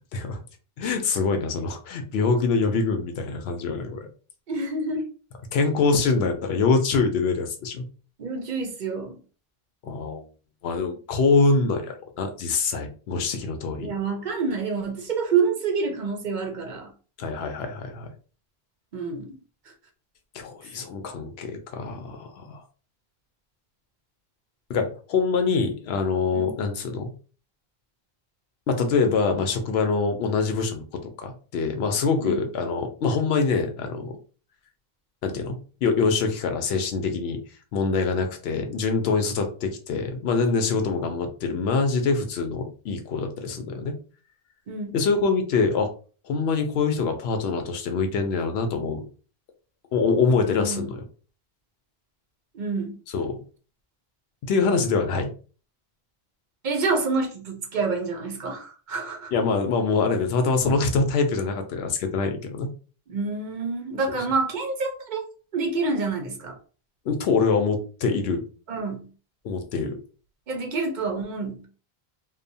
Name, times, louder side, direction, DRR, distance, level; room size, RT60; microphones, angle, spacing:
voice 1, 0.8-4.0 5.5-7.8 9.8-10.2 10.6-13.9 17.2-18.1 20.3-22.6 24.7-27.1 28.7-30.8 31.2-34.2 35.2-35.6 35.8-37.4 37.7-44.0 44.9-45.9 46.3-49.0 49.9-51.0 53.1-53.4 54.4-55.3 59.3-62.7 67.1-68.4 69.4-70.0, left 4 dB, 80° left, 6 dB, 0.8 m, -24 dB
voice 2, 4.5-5.0 8.2-9.2 13.8-16.9 18.9-19.4 26.3-26.5 32.2-32.4 44.7-44.9 50.4-50.8 52.5-52.9 56.6-59.3 63.1-65.2 65.5-66.5 68.7-69.1 70.5-71.7, right 4 dB, 55° right, 3 dB, 0.7 m, -27 dB
2.9 x 2.0 x 2.6 m, 0.38 s
omnidirectional pair, 1.0 m